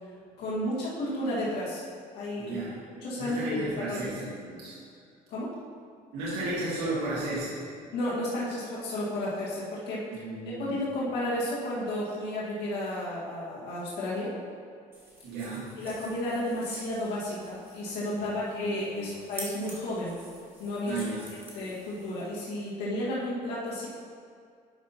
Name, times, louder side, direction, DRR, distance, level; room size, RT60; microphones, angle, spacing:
voice 1, 0.4-1.8 2.1-2.6 3.0-4.1 5.3-5.5 7.9-10.0 10.4-14.3 15.8-20.1 20.6-21.1 21.5-23.9, left 1 dB, 85° left, -7 dB, 1.8 m, -32 dB
voice 2, 2.4-2.8 3.1-4.7 6.1-7.6 10.1-10.7 15.2-15.7 18.1-19.1 20.8-21.3, right 2 dB, 80° right, -9 dB, 1.8 m, -34 dB
sound 1, 14.9-22.4, right 1 dB, 15° right, 1.9 m, -48 dB
11.0 x 5.7 x 2.9 m, 2.2 s
cardioid pair, 110°, 17 cm